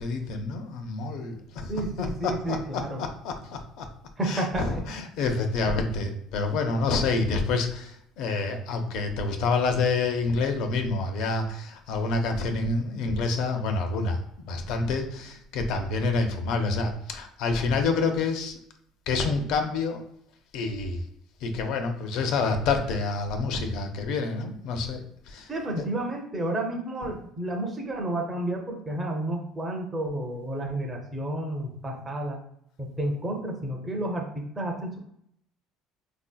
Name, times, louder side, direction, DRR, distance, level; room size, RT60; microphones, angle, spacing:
voice 1, 0.0-1.7 2.0-3.9 4.2-18.6 19.1-20.0 20.5-21.0 21.4-25.5 25.8-25.9, left 3 dB, 65° left, 5 dB, 0.5 m, -28 dB
voice 2, 1.7-3.0 4.2-4.7 25.5-32.4 32.8-35.0, right 1 dB, 15° right, 0 dB, 0.5 m, -31 dB
4.0 x 2.6 x 2.2 m, 0.71 s
cardioid pair, 155°, 0 cm